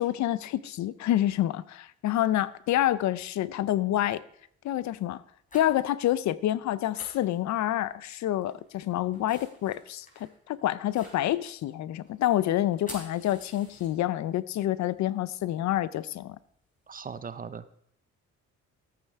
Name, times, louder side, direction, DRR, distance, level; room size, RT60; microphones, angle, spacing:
voice 1, 0.0-4.2 4.6-5.2 5.5-16.4, left 13 dB, 70° left, 0.5 m, -28 dB
sound 1, 3.2-3.6 4.0-4.3 5.1-5.9 6.2-6.3 6.5-6.6 6.9-8.0 8.3-14.3 14.7-17.2, left 1 dB, 25° left, 4.4 m, -51 dB
voice 2, 16.9-17.8, right 6 dB, 30° right, 0.6 m, -39 dB
14.0 x 8.5 x 3.5 m
cardioid pair, 90°, 30 cm